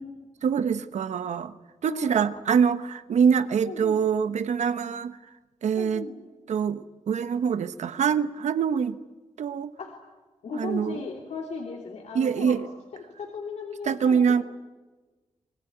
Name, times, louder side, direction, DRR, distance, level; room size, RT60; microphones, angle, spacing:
voice 1, 0.4-1.5 1.8-5.2 5.6-6.0 6.5-9.0 9.4-9.7 10.5-11.0 12.1-12.7 13.9-14.4, right 7 dB, 80° right, 12 dB, 1.1 m, -24 dB
voice 2, 1.8-2.4 3.6-4.0 5.8-6.2 9.8-9.9 10.4-12.7 12.9-14.4, left 4 dB, 70° left, 0 dB, 3.0 m, -37 dB
25.5 x 20.5 x 9.3 m, 1.3 s
wide cardioid pair, 135°, 12 cm